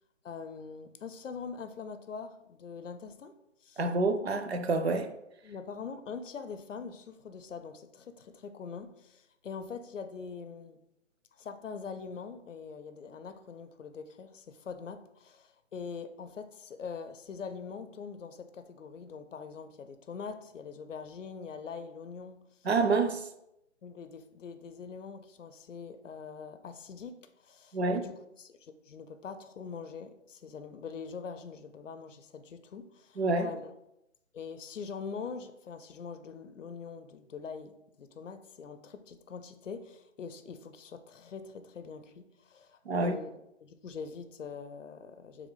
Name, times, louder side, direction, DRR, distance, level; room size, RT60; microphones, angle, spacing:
voice 1, 0.2-3.3 3.6-3.9 5.4-10.8 11.4-22.5 23.8-33.7 34.3-45.5, left 5 dB, 75° left, 0.6 m, -43 dB
voice 2, 3.8-5.1 22.6-23.2 27.7-28.0 33.2-33.5 42.9-43.2, right 3 dB, 55° right, 0.5 m, -27 dB
4.1 x 3.4 x 3.8 m
hypercardioid pair, 170°, 38 cm